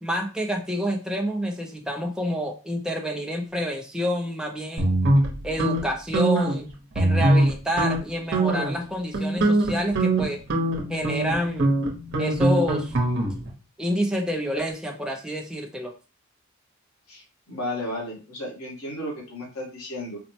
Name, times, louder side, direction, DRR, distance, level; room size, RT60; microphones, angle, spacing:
voice 1, 0.0-4.9 5.4-10.4 10.9-11.7 12.2-12.9 13.8-15.9, equal, 5° right, 1 dB, 0.4 m, -28 dB
sound 1, 4.8-5.8 6.1-6.6 7.0-7.5 7.8-8.0 8.3-8.8 9.1-13.5, right 2 dB, 50° right, 0.8 m, -22 dB
voice 2, 17.1-20.2, left 1 dB, 90° left, -2 dB, 1.4 m, -34 dB
4.1 x 2.1 x 2.8 m, 0.33 s
head